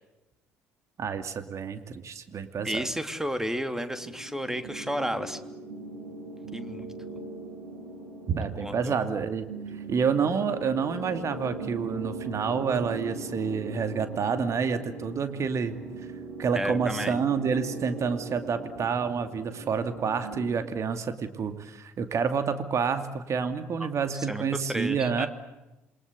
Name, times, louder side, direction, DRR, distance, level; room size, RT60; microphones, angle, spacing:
voice 1, 1.0-2.9 8.3-9.5 9.9-15.8 16.4-25.3, right 6 dB, 45° right, 9 dB, 2.6 m, -28 dB
voice 2, 2.6-5.4 6.5-6.9 8.6-9.1 16.5-17.2 23.8-23.9 24.1-24.4 24.7-25.3, equal, 5° right, 9 dB, 3.0 m, -32 dB
sound 1, 4.0-20.6, right 3 dB, 70° right, 5.8 m, -40 dB
27.5 x 24.0 x 8.3 m, 1.0 s
figure-of-eight pair, 50°, 7 cm